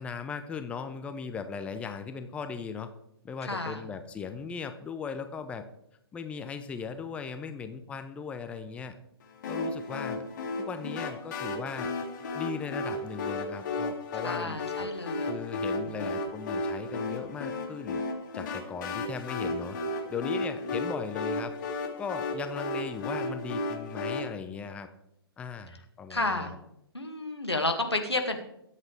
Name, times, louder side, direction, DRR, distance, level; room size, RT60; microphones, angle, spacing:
voice 1, 0.0-2.9 3.2-5.6 6.1-8.9 9.5-10.2 10.6-11.9 12.3-14.9 15.2-18.0 18.3-19.8 20.1-21.5 22.0-24.9 25.4-26.6, left 5 dB, 10° left, 8 dB, 0.6 m, -38 dB
voice 2, 3.4-3.8 14.2-15.3 16.0-16.1 26.1-26.5 26.9-28.4, left 2 dB, 85° left, 4 dB, 2.3 m, -31 dB
sound 1, 9.4-24.2, left 2 dB, 45° left, 2.7 m, -34 dB
22.5 x 8.3 x 3.5 m, 0.80 s
figure-of-eight pair, 125°, 14 cm